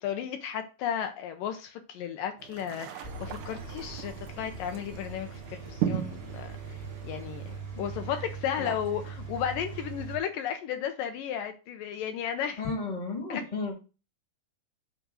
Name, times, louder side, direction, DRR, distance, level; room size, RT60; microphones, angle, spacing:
voice 1, 0.0-7.4 7.8-12.6 13.3-13.4, left 9 dB, 75° left, 2.3 m, -34 dB
sound 1, 2.4-7.6, right 10 dB, 70° right, 2.0 m, -37 dB
Engine, 3.0-10.2, right 5 dB, 25° right, 1.6 m, -41 dB
voice 2, 7.7-8.3 8.6-8.8 12.6-13.7, left 3 dB, 15° left, 1.6 m, -35 dB
8.0 x 3.7 x 6.3 m
omnidirectional pair, 4.2 m